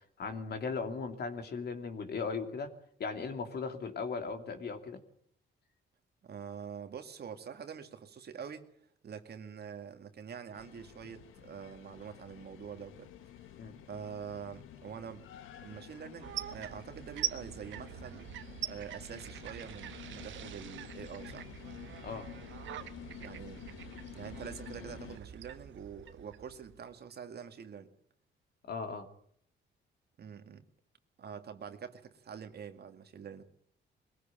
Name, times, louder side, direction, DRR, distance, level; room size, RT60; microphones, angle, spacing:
voice 1, 0.2-2.7 3.0-5.0 13.5-13.7 22.0-22.3 28.7-29.1, left 4 dB, 55° left, 6 dB, 2.9 m, -37 dB
voice 2, 6.2-8.7 9.0-13.1 13.4-13.6 13.9-15.3 15.6-18.3 18.6-21.5 23.2-23.7 24.1-27.9 30.2-30.6 31.2-33.4, right 7 dB, 55° right, 8 dB, 2.1 m, -45 dB
sound 1, 10.5-25.2, left 10 dB, 90° left, 1.5 m, -51 dB
sound 2, 16.2-27.0, right 11 dB, 75° right, 1.3 m, -44 dB
22.0 x 16.0 x 8.8 m, 0.67 s
cardioid pair, 90°, 20 cm